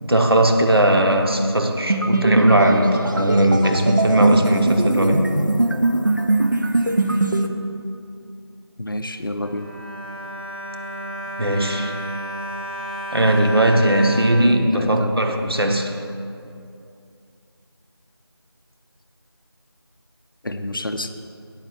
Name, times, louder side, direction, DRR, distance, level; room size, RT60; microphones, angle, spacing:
voice 1, 0.0-5.3 11.4-11.9 13.1-16.0, right 1 dB, 65° right, 3 dB, 1.1 m, -18 dB
Techno Computer Sound, 1.9-7.5, right 2 dB, 50° right, 0.7 m, -21 dB
voice 2, 8.8-9.8 14.6-15.2 20.4-21.1, left 1 dB, 55° left, 7 dB, 0.6 m, -29 dB
Bowed string instrument, 9.2-15.4 16.1-16.2 16.5-16.6, right 1 dB, 20° right, 1.1 m, -33 dB
9.0 x 5.6 x 7.8 m, 2.5 s
figure-of-eight pair, 175°, 14 cm